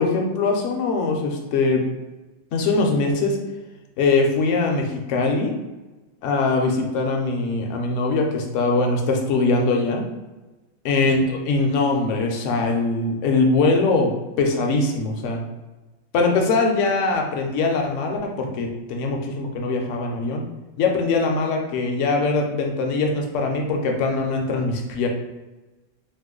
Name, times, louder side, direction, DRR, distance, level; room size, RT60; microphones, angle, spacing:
voice 1, 0.0-1.8 2.5-3.4 4.0-5.5 6.2-10.0 10.8-15.4 16.1-20.5 20.8-25.1, left 3 dB, 70° left, 2 dB, 0.9 m, -22 dB
3.0 x 2.1 x 3.6 m, 1.1 s
omnidirectional pair, 1.4 m